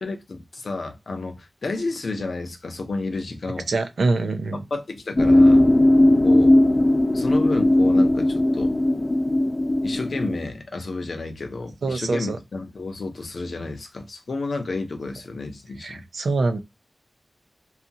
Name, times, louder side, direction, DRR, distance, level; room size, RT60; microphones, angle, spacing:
voice 1, 0.0-3.7 4.7-5.7 6.2-6.6 7.1-8.7 9.8-16.0, left 3 dB, 80° left, 0.6 m, -31 dB
voice 2, 3.7-4.6 11.8-12.4 15.8-16.6, right 3 dB, 90° right, 0.5 m, -24 dB
sound 1, 5.2-10.5, left 1 dB, 40° left, 0.6 m, -17 dB
2.8 x 2.4 x 2.6 m
cardioid pair, 45°, 0 cm